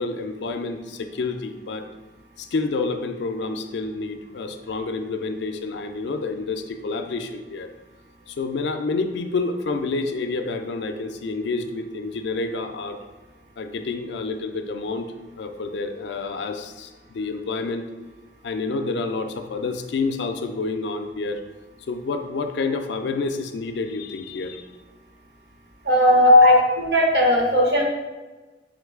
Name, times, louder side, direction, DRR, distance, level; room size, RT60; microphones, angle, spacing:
voice 1, 0.0-1.9 2.4-7.7 8.3-13.0 13.6-17.9 18.4-21.4 21.9-24.6 26.3-26.7 27.5-27.7, left 3 dB, 75° left, 7 dB, 0.4 m, -27 dB
voice 2, 25.8-26.5 26.9-27.8, equal, 70° right, 0 dB, 0.9 m, -18 dB
3.7 x 3.1 x 3.6 m, 1.2 s
head